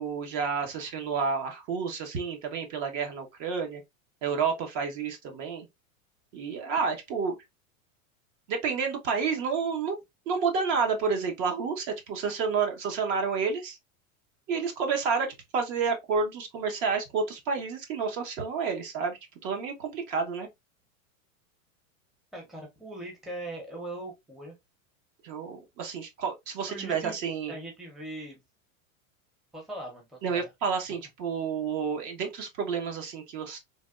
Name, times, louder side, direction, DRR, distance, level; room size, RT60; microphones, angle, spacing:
voice 1, 0.0-3.8 4.2-5.7 6.3-7.4 8.5-9.9 10.3-13.8 14.5-20.5 25.2-27.5 30.2-33.6, right 5 dB, 45° right, 0.9 m, -30 dB
voice 2, 22.3-24.5 26.7-27.2 27.5-28.4 29.5-30.5, right 1 dB, ahead, 0.6 m, -40 dB
3.3 x 2.2 x 2.3 m
supercardioid pair, 120°, 42 cm